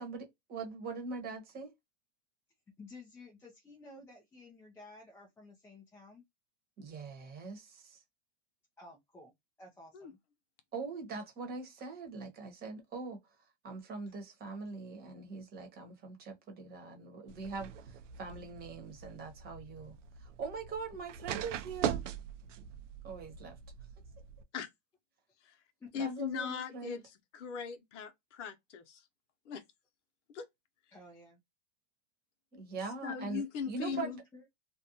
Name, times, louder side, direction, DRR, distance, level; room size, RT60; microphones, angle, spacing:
voice 1, 0.0-1.7 6.8-8.0 10.7-13.2 13.6-22.0 23.0-23.6 26.0-27.0 32.5-34.2, right 4 dB, 25° right, 1.0 m, -42 dB
voice 2, 2.8-6.2 8.8-9.3 9.6-10.2 25.8-26.0 30.9-31.4 33.9-34.0 34.3-34.5, left 2 dB, 5° left, 0.4 m, -53 dB
sound 1, 17.3-24.4, right 9 dB, 75° right, 0.6 m, -41 dB
voice 3, 25.9-27.0 27.3-29.0 29.5-29.6 30.3-30.5 33.0-34.1, left 6 dB, 70° left, 0.8 m, -39 dB
2.5 x 2.2 x 2.7 m
hypercardioid pair, 135°, 37 cm